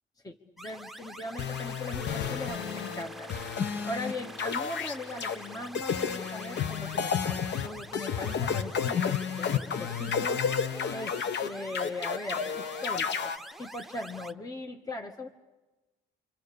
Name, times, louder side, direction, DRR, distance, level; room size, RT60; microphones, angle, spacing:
voice 1, 0.2-3.3 3.8-10.5 10.9-15.3, left 2 dB, 20° left, 4 dB, 1.4 m, -39 dB
sound 1, 0.6-14.3, right 1 dB, ahead, 1.2 m, -46 dB
sound 2, 1.4-3.0 3.3-4.1 4.4-5.4 5.7-13.4, left 7 dB, 60° left, 1.2 m, -31 dB
Guitar, 1.9-8.5, left 3 dB, 85° left, 6.7 m, -48 dB
26.5 x 26.0 x 6.8 m, 1.1 s
cardioid pair, 90°, 20 cm